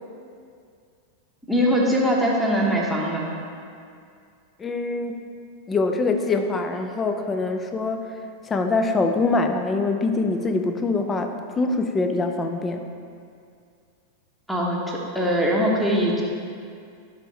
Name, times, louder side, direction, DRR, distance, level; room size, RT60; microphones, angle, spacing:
voice 1, 1.5-3.3 14.5-16.2, equal, ahead, -2 dB, 1.2 m, -22 dB
voice 2, 4.6-5.2 5.7-8.2 8.5-12.8, left 3 dB, 20° left, 6 dB, 0.5 m, -24 dB
10.5 x 3.6 x 4.2 m, 2.3 s
figure-of-eight pair, 90°, 0 cm